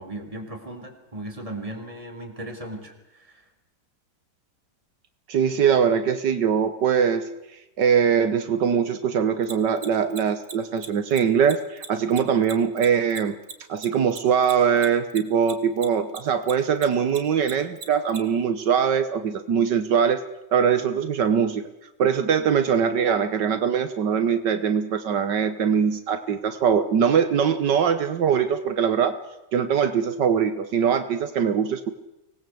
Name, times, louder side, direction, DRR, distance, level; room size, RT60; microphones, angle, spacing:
voice 1, 0.0-3.5, right 1 dB, 20° right, 4 dB, 3.9 m, -37 dB
voice 2, 5.3-7.3 7.8-13.3 13.7-20.2 20.5-21.6 22.0-29.2 29.5-31.9, right 7 dB, 75° right, 10 dB, 1.8 m, -22 dB
Mechanisms, 9.4-16.2 16.4-18.2, right 5 dB, 45° right, 2.3 m, -37 dB
25.0 x 19.5 x 7.8 m, 0.93 s
omnidirectional pair, 1.9 m